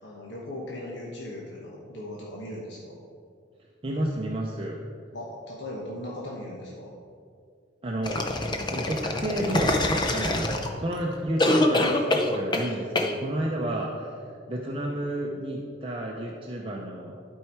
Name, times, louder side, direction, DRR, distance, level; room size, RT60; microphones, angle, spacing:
voice 1, 0.0-3.0 5.1-6.9 10.1-10.4 12.6-12.8, left 1 dB, 60° left, -4 dB, 1.2 m, -38 dB
voice 2, 3.8-4.8 7.8-8.3 8.6-9.8 10.1-14.2 14.5-17.2, right 1 dB, 30° right, -1 dB, 0.6 m, -31 dB
sound 1, 8.0-10.9 11.4-12.7 13.0-13.1, left 1 dB, 25° left, 0.6 m, -24 dB
12.0 x 4.6 x 4.5 m, 2.3 s
head